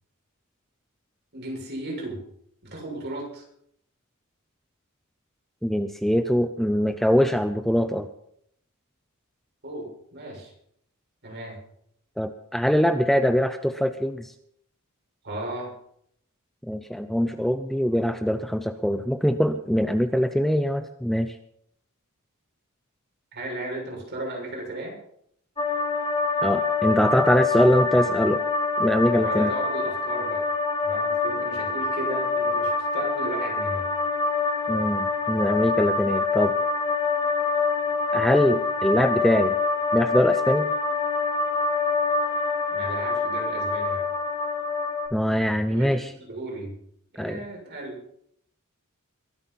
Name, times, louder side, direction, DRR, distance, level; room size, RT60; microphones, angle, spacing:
voice 1, 1.3-2.2 2.6-3.4 9.6-10.5 11.2-11.6 15.2-15.7 23.3-25.0 29.2-30.5 30.8-33.8 42.7-44.0 45.7-46.7 47.1-48.0, right 1 dB, 50° right, -2 dB, 6.8 m, -35 dB
voice 2, 5.6-8.1 12.2-14.3 16.7-21.4 26.4-28.4 28.8-29.5 34.7-36.5 38.1-39.6 39.9-40.7 45.1-46.1 47.2-47.4, equal, ahead, 9 dB, 0.6 m, -23 dB
sound 1, 25.6-45.1, left 4 dB, 25° left, 3.8 m, -25 dB
22.5 x 8.6 x 5.7 m, 0.70 s
head